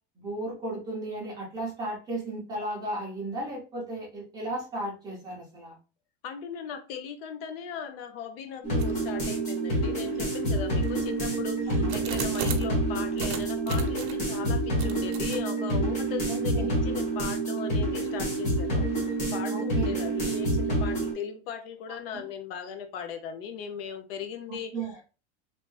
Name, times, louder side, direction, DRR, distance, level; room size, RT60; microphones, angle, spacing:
voice 1, 0.2-5.8 11.7-11.9 16.3-16.7 19.5-19.9 22.1-22.2 24.7-24.9, right 2 dB, 10° right, 0.8 m, -34 dB
voice 2, 6.2-24.8, left 7 dB, 60° left, 0.7 m, -38 dB
sound 1, 8.6-21.1, right 2 dB, 20° left, 1.0 m, -28 dB
sound 2, 8.8-9.1 9.7-9.8 10.5-12.8 13.2-14.3 14.8-15.4, right 7 dB, 80° right, 0.8 m, -37 dB
3.2 x 2.7 x 3.1 m
supercardioid pair, 180°, 33 cm